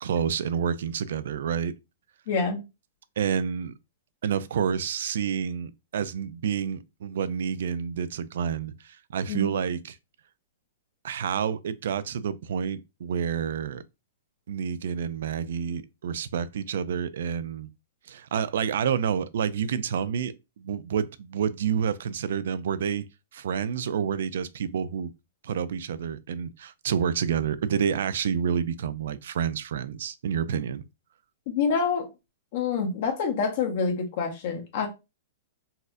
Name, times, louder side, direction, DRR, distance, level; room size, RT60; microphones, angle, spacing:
voice 1, 0.0-1.7 3.2-3.7 4.2-10.0 11.0-13.8 14.5-17.7 18.1-23.1 23.3-25.1 25.4-30.8, right 7 dB, 70° right, 0.3 m, -29 dB
voice 2, 2.3-2.6 9.3-9.5 31.5-32.1 32.5-34.9, left 5 dB, 50° left, 0.8 m, -27 dB
4.1 x 2.5 x 2.5 m
hypercardioid pair, 155°, 0 cm